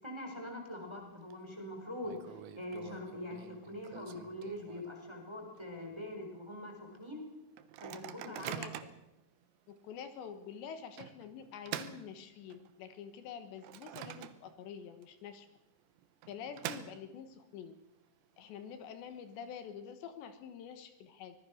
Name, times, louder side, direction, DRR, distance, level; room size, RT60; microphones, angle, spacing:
voice 1, 0.0-7.2 7.8-8.6, left 1 dB, 5° right, 1 dB, 4.0 m, -43 dB
Microwave oven, 0.8-1.3 1.6-1.7 2.0-5.1 5.5-5.6 5.9-6.2 6.7-6.8 7.6-9.1 9.7-9.8 11.0-12.8 13.2-14.7 15.0-15.1 16.0-17.4, right 11 dB, 80° right, 3.4 m, -46 dB
voice 2, 8.3-8.9 9.7-15.5 16.3-17.7 18.4-21.4, left 7 dB, 75° left, 9 dB, 3.4 m, -47 dB
25.0 x 19.5 x 6.4 m, 0.94 s
omnidirectional pair, 5.3 m